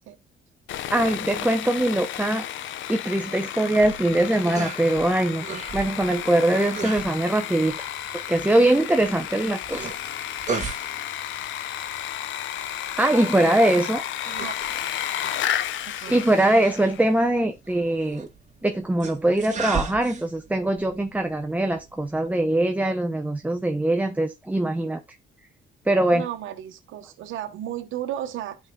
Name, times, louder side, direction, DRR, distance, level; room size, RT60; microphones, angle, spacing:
Sawing, 0.7-17.1, left 11 dB, 75° left, 0.7 m, -32 dB
voice 1, 0.9-2.5 2.9-5.4 5.7-7.9 8.1-9.9 13.0-14.0 16.1-18.3 18.6-25.0 25.9-26.3, right 1 dB, 5° right, 0.7 m, -22 dB
sound 1, 3.7-22.4, right 5 dB, 35° right, 1.9 m, -38 dB
voice 2, 26.1-28.6, right 11 dB, 80° right, 1.0 m, -33 dB
11.5 x 4.9 x 2.3 m
cardioid pair, 90°, 20 cm